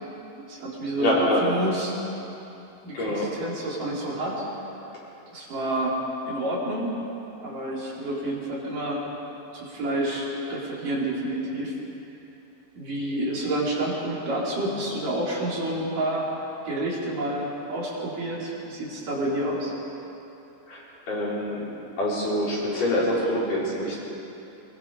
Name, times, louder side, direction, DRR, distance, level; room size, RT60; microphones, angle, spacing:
voice 1, 0.4-1.9 2.8-4.4 5.3-6.0 6.2-6.9 7.4-9.0 9.5-11.8 12.8-16.3 16.6-19.7, right 1 dB, 50° right, -5 dB, 5.1 m, -29 dB
voice 2, 1.0-1.4 2.9-3.3 20.7-21.6 22.0-24.0, left 1 dB, 50° left, -7 dB, 6.7 m, -25 dB
23.0 x 22.0 x 5.6 m, 3.0 s
omnidirectional pair, 4.9 m